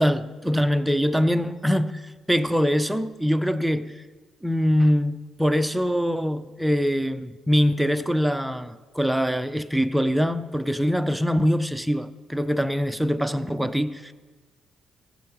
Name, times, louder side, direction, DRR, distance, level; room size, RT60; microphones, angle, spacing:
voice 1, 0.0-3.9 4.4-14.1, equal, 5° right, 0.5 m, -23 dB
16.0 x 8.0 x 3.1 m
cardioid pair, 90°, 0 cm